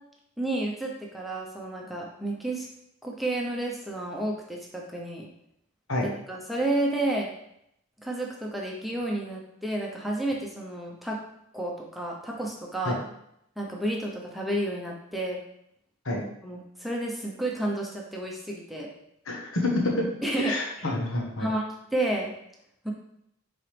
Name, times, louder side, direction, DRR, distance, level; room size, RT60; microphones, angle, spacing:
voice 1, 0.4-2.7 3.0-5.3 6.0-7.3 8.0-11.2 11.5-13.0 13.6-15.4 16.4-18.9 20.2-20.5 20.8-20.9 21.4-21.6 21.9-22.3 22.8-22.9, right 1 dB, ahead, -2 dB, 0.8 m, -31 dB
voice 2, 19.3-20.0 20.4-21.5, left 2 dB, 80° left, -1 dB, 1.5 m, -28 dB
9.1 x 4.0 x 3.4 m, 0.76 s
head